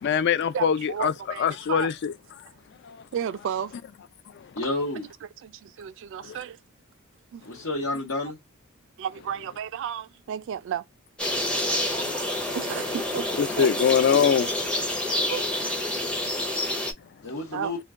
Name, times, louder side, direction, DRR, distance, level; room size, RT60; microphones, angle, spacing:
voice 1, 0.0-1.1 1.4-2.1 2.9-3.0 13.4-14.5, left 7 dB, 55° left, 0.3 m, -22 dB
voice 2, 0.5-1.9 2.5-2.6 3.1-3.7 5.4-6.6 7.3-7.4 9.0-10.9 11.7-13.8 15.3-15.5 16.0-16.6 17.5-17.7, right 8 dB, 60° right, 0.3 m, -34 dB
voice 3, 4.6-5.1 7.5-8.4 17.2-17.8, left 2 dB, 75° left, 1.0 m, -30 dB
sound 1, 11.2-16.9, left 1 dB, 5° left, 0.6 m, -28 dB
2.3 x 2.2 x 3.5 m
head